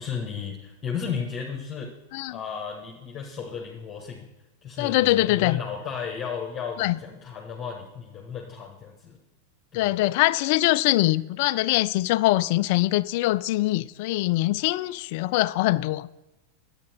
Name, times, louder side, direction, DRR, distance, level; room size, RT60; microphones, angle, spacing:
voice 1, 0.0-1.9 2.3-4.3 4.6-9.2 9.7-9.9, left 6 dB, 25° left, 1.3 m, -34 dB
voice 2, 4.8-5.6 6.8-7.0 9.7-16.1, left 18 dB, 50° left, 0.3 m, -23 dB
10.5 x 8.5 x 4.4 m
figure-of-eight pair, 90°, 0 cm